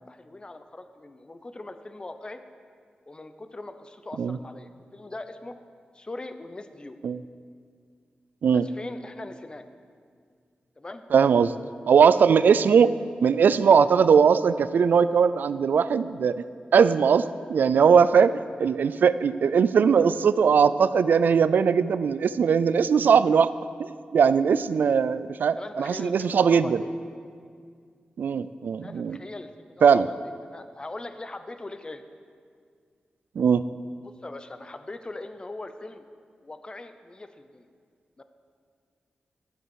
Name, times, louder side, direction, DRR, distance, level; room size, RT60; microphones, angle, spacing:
voice 1, 0.0-2.4 3.1-5.6 5.9-7.0 8.5-9.6 10.8-11.0 25.6-26.9 28.8-32.0 34.0-36.0 36.4-37.6 38.2-38.3, left 2 dB, 30° left, 9 dB, 0.7 m, -40 dB
voice 2, 11.1-11.5 11.9-12.9 13.2-16.4 16.7-17.2 17.5-23.5 23.8-26.8 28.2-29.2 29.8-30.1 33.4-33.6, right 6 dB, 80° right, 15 dB, 0.4 m, -20 dB
12.0 x 7.9 x 6.4 m, 2.1 s
cardioid pair, 70°, 3 cm